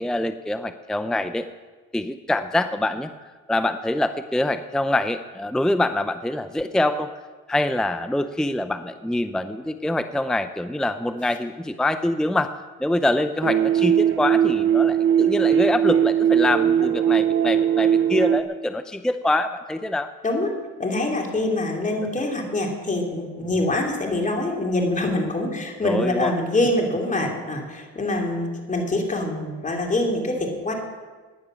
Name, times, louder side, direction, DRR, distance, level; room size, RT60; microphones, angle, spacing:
voice 1, 0.0-1.5 1.9-3.1 3.5-7.1 7.5-12.5 12.8-20.1 25.8-26.3, left 1 dB, ahead, 10 dB, 0.6 m, -25 dB
sound 1, 13.4-18.4, right 9 dB, 45° right, 0.8 m, -19 dB
voice 2, 20.8-30.7, left 2 dB, 25° left, 1 dB, 3.0 m, -25 dB
17.0 x 10.0 x 6.3 m, 1.4 s
cardioid pair, 90°, 30 cm